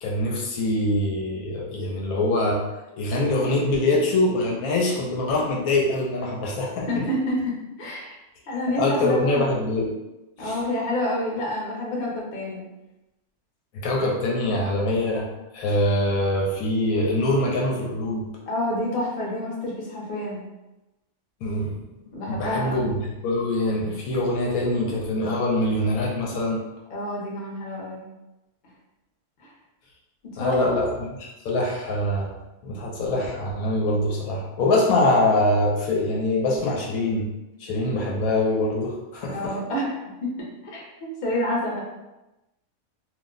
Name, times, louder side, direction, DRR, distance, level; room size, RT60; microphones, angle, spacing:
voice 1, 0.0-2.6 3.0-7.0 8.8-9.9 10.4-10.6 13.7-15.3 15.5-18.3 21.4-21.8 22.3-26.6 30.4-32.3 32.6-37.3 37.6-39.6, left 1 dB, 80° left, -2 dB, 1.0 m, -24 dB
voice 2, 6.9-7.4 7.8-8.2 8.5-9.5 10.4-12.6 18.5-20.4 22.1-22.9 26.9-28.0 28.6-28.7 29.4-29.5 30.3-30.8 39.3-40.3 40.6-41.8, left 1 dB, 45° left, -3 dB, 0.8 m, -28 dB
2.6 x 2.1 x 3.7 m, 1.0 s
omnidirectional pair, 1.5 m